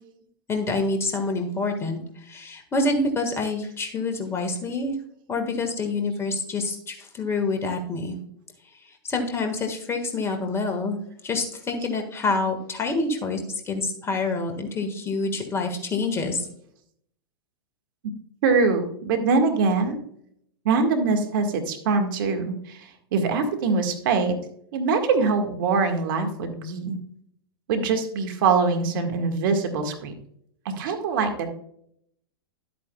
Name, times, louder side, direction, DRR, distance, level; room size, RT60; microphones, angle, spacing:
voice 1, 0.5-4.9 5.3-8.2 9.0-16.5, left 3 dB, 20° left, 5 dB, 1.6 m, -27 dB
voice 2, 18.4-20.0 20.6-22.8 23.1-24.3 24.7-27.0 27.7-30.1 30.6-31.5, right 4 dB, 60° right, 5 dB, 1.7 m, -23 dB
12.0 x 8.5 x 2.3 m, 0.68 s
hypercardioid pair, 105°, 13 cm